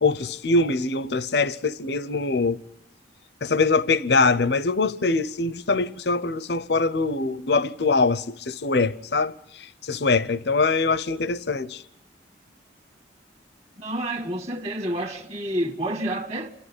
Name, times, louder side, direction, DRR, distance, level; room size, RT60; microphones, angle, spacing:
voice 1, 0.0-2.6 3.4-11.8, left 3 dB, 70° left, 0.8 m, -23 dB
voice 2, 13.8-16.5, right 1 dB, 35° right, 1.7 m, -29 dB
27.5 x 13.0 x 9.9 m
head